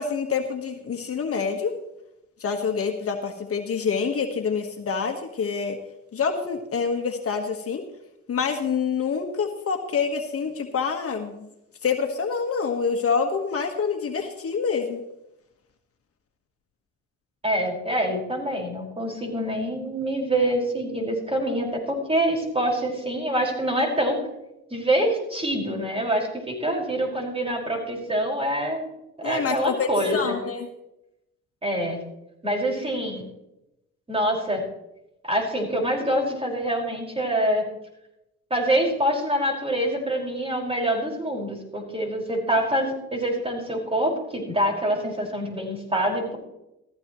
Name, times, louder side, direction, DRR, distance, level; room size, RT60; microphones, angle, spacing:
voice 1, 0.0-1.7 2.4-5.8 6.1-7.8 8.3-11.5 11.8-15.0 29.2-30.7, left 5 dB, 50° left, 4 dB, 1.5 m, -26 dB
voice 2, 17.4-24.2 24.7-28.9 29.2-30.3 31.6-32.0 32.4-33.2 34.1-34.6 35.2-37.7 38.5-46.4, right 1 dB, 20° right, -1 dB, 5.3 m, -25 dB
15.5 x 14.5 x 3.1 m, 0.88 s
cardioid pair, 90°, 30 cm